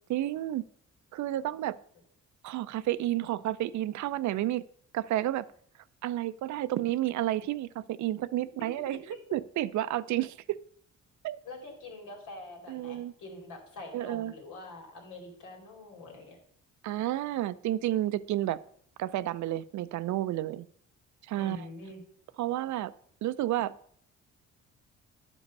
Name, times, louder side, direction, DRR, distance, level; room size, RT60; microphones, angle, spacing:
voice 1, 0.1-0.6 1.1-1.8 2.4-4.6 4.9-5.4 6.0-9.0 9.3-10.6 11.2-11.4 12.7-13.1 13.9-14.3 16.8-18.6 19.0-20.7 21.3-21.7 22.4-22.9 23.2-23.7, right 14 dB, 70° right, 17 dB, 0.5 m, -31 dB
voice 2, 11.4-16.4 21.4-22.0, left 2 dB, 85° left, 2 dB, 2.8 m, -45 dB
10.5 x 5.3 x 5.3 m, 0.63 s
cardioid pair, 90°, 30 cm